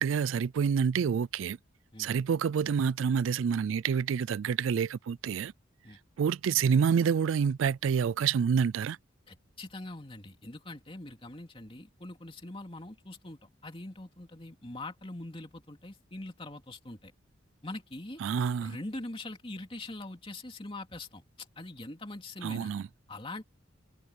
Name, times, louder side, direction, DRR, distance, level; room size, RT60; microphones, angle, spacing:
voice 1, 0.0-1.6 2.0-5.5 6.2-9.0 18.2-18.8 22.4-22.8, right 7 dB, 75° right, 0.3 m, -27 dB
voice 2, 9.3-17.1 17.6-18.2 18.6-22.7 23.1-23.4, left 2 dB, 25° left, 2.8 m, -43 dB
head